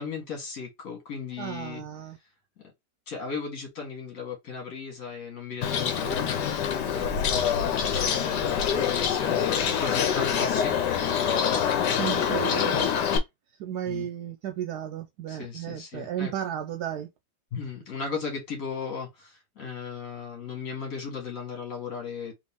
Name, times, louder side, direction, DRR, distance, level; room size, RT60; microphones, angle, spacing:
voice 1, 0.0-1.8 3.1-6.6 6.8-12.3 13.9-14.1 15.3-16.3 17.5-22.3, left 5 dB, 50° left, 2.1 m, -36 dB
voice 2, 1.4-2.2 9.5-9.8 12.0-12.9 13.6-17.1, right 10 dB, 75° right, 1.1 m, -34 dB
Bird, 5.6-13.2, left 8 dB, 80° left, 1.4 m, -25 dB
4.0 x 3.1 x 3.5 m
omnidirectional pair, 1.8 m